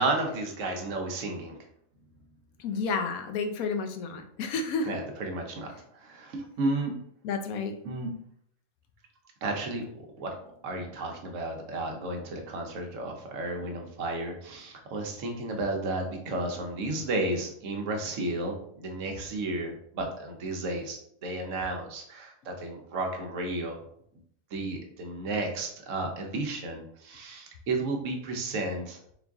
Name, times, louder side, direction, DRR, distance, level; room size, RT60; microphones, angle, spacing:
voice 1, 0.0-1.5 4.9-7.0 7.8-8.2 9.4-10.3 10.6-23.8 24.5-29.0, right 2 dB, 70° right, 2 dB, 1.0 m, -33 dB
voice 2, 2.6-4.9 7.2-7.7, left 4 dB, 90° left, 6 dB, 1.0 m, -31 dB
3.8 x 2.4 x 3.4 m, 0.69 s
omnidirectional pair, 1.4 m